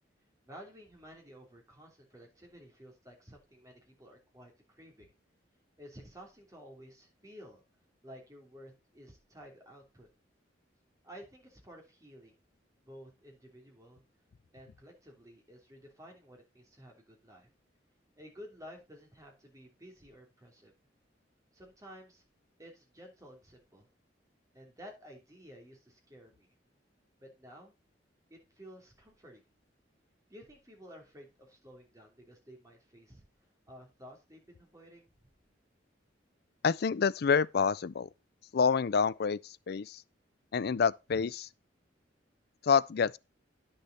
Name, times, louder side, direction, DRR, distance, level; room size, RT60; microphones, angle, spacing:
voice 1, 0.5-5.1 5.8-7.6 8.0-10.1 11.0-12.4 12.8-14.0 14.5-17.5 18.2-20.7 21.5-22.2 22.6-23.9 24.5-26.5 27.2-27.7 28.3-29.4 30.3-33.2 33.7-35.1, equal, 20° right, 3.1 m, -53 dB
voice 2, 36.6-38.1 38.5-40.0 40.5-41.5 42.6-43.2, left 6 dB, 55° left, 0.4 m, -28 dB
9.9 x 6.6 x 4.1 m
head